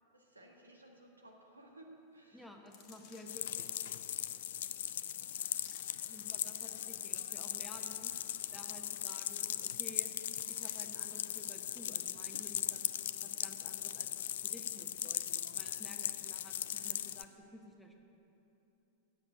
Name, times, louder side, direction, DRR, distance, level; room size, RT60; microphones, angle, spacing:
voice 1, 0.1-2.5 2.9-3.0 16.7-17.0, right 1 dB, 80° right, 1 dB, 1.3 m, -58 dB
voice 2, 2.3-3.8 6.1-8.1 8.5-10.1 10.5-12.9 13.2-18.0, left 1 dB, 5° left, 2 dB, 1.0 m, -54 dB
sound 1, 2.7-3.5 4.3-4.4 5.2-6.1 6.4-7.2 7.7-8.9 9.2-9.3 9.6-9.8 10.3-11.2 11.6-11.7, left 7 dB, 40° left, 1.1 m, -59 dB
sound 2, 3.3-17.2, left 11 dB, 60° left, 0.3 m, -39 dB
8.1 x 8.0 x 8.2 m, 2.9 s
figure-of-eight pair, 90°, 0 cm